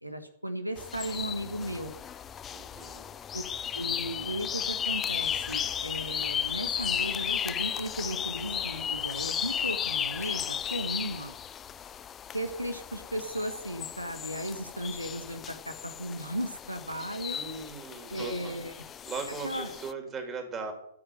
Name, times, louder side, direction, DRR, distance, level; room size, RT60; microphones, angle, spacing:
voice 1, 0.0-1.9 3.3-3.4 3.7-11.3 12.3-17.4 18.1-18.8 19.4-19.7, right 1 dB, 85° right, 8 dB, 1.5 m, -36 dB
sound 1, 0.8-19.9, left 9 dB, 20° left, 0.5 m, -35 dB
voice 2, 2.5-3.2 11.0-11.1 17.3-18.5 19.1-20.7, right 4 dB, 20° right, 4 dB, 3.5 m, -39 dB
14.5 x 7.9 x 9.2 m, 0.71 s
figure-of-eight pair, 110°, 0 cm